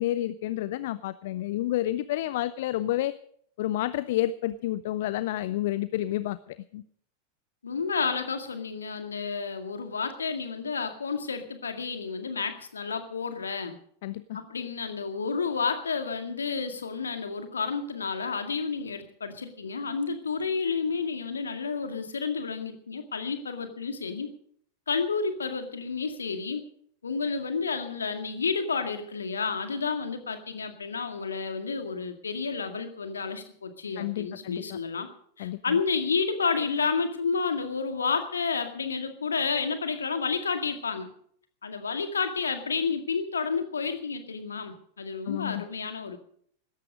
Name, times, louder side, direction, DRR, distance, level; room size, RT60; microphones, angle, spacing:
voice 1, 0.0-3.1 3.6-6.8 14.0-14.4 34.0-34.8 35.4-35.8 45.3-45.6, left 14 dB, 55° left, 16 dB, 0.5 m, -30 dB
voice 2, 7.6-13.8 14.3-24.3 24.9-26.6 27.0-35.1 35.4-41.1 41.6-46.2, left 5 dB, 70° left, 7 dB, 2.0 m, -30 dB
17.0 x 13.5 x 5.1 m, 0.63 s
figure-of-eight pair, 90°, 0 cm